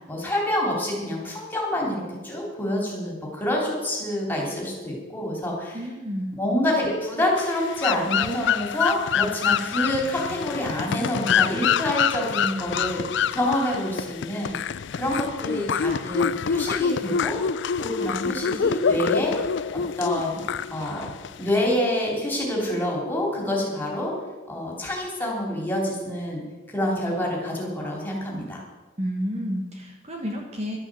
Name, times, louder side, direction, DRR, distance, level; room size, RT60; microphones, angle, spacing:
voice 1, 0.1-5.8 6.4-14.6 14.9-17.4 17.8-19.4 19.7-20.3 20.7-21.1 21.4-24.1 24.5-26.4 26.7-28.6, left 1 dB, 10° left, -2 dB, 3.4 m, -27 dB
voice 2, 5.7-6.4 29.0-30.8, equal, 30° right, 1 dB, 1.4 m, -30 dB
sound 1, 7.4-21.7, left 7 dB, 55° left, 0.4 m, -26 dB
12.0 x 8.9 x 7.6 m, 1.2 s
head